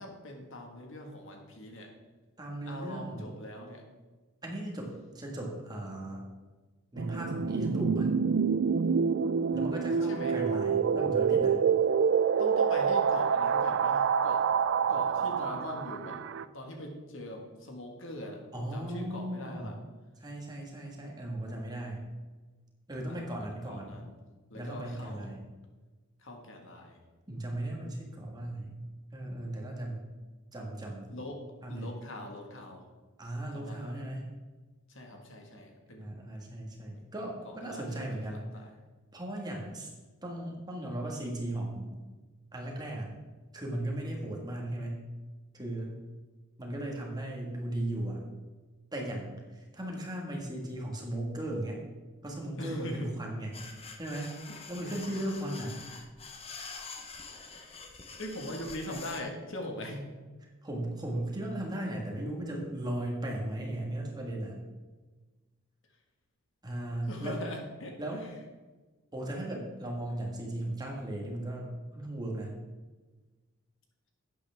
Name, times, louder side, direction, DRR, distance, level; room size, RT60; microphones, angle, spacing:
voice 1, 0.0-1.9 2.7-3.8 10.1-10.4 12.4-14.5 14.9-16.2 16.5-19.8 23.1-24.1 24.5-25.3 26.2-27.0 31.1-31.4 31.7-32.8 33.5-33.9 34.9-36.0 36.9-37.0 37.4-38.7 52.6-53.1 54.5-54.9 55.4-55.5 57.5-57.8 58.2-60.1 67.1-68.3, left 1 dB, 60° left, 2 dB, 1.7 m, -42 dB
voice 2, 2.4-3.3 4.4-6.2 6.9-8.1 9.5-11.6 18.5-19.8 20.2-22.0 22.9-24.0 24.5-25.4 27.3-28.8 29.1-30.1 30.5-31.2 31.6-31.9 33.2-34.2 36.0-38.6 39.1-39.9 40.2-41.9 42.5-43.1 43.5-45.0 45.5-46.0 46.6-48.2 48.9-51.8 52.2-53.6 54.0-54.3 54.7-55.8 60.6-64.6 66.6-67.4 68.0-68.2 69.1-72.5, right 1 dB, 20° right, -1 dB, 1.7 m, -37 dB
sound 1, 7.0-16.4, right 6 dB, 55° right, 0.3 m, -27 dB
sound 2, 53.5-59.2, left 4 dB, 30° left, 0.9 m, -46 dB
11.5 x 9.0 x 3.5 m, 1.3 s
head